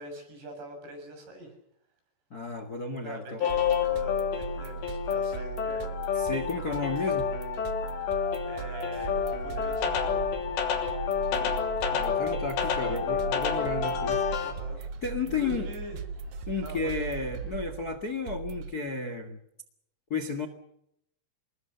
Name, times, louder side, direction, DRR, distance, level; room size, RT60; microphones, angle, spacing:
voice 1, 0.0-1.5 3.0-6.0 8.4-10.2 12.6-13.1 14.4-14.9 15.2-16.0 16.6-17.2, right 1 dB, 85° right, 5 dB, 9.4 m, -44 dB
voice 2, 2.3-3.4 6.2-7.3 11.3-11.6 11.9-14.2 15.0-15.7 16.5-19.4 20.1-20.5, left 4 dB, 50° left, 10 dB, 1.1 m, -33 dB
sound 1, 3.4-14.5, left 7 dB, 85° left, 5.2 m, -29 dB
sound 2, 3.5-18.7, right 6 dB, 60° right, 2.3 m, -39 dB
sound 3, 8.9-17.6, right 1 dB, 40° right, 5.6 m, -42 dB
29.0 x 21.0 x 6.8 m, 0.75 s
omnidirectional pair, 4.9 m